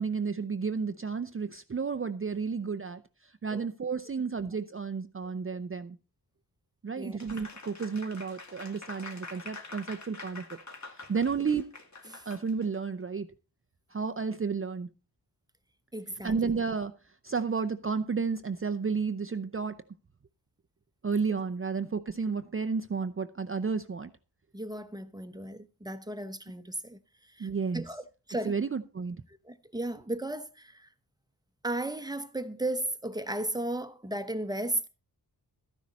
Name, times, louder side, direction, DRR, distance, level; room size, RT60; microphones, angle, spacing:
voice 1, 0.0-6.0 6.8-10.4 11.1-11.7 12.3-13.3 13.9-14.9 16.2-16.9 17.2-19.8 21.0-24.1 27.4-27.8 28.4-29.2, right 5 dB, 30° right, 0.6 m, -32 dB
Applause, 7.2-12.8, left 3 dB, 40° left, 1.9 m, -46 dB
voice 2, 15.9-16.3 24.5-27.0 27.4-27.5 27.7-28.0 28.3-28.6 29.5-30.9 31.6-34.9, right 1 dB, 10° right, 1.0 m, -35 dB
13.5 x 10.5 x 4.1 m
wide cardioid pair, 125°, 41 cm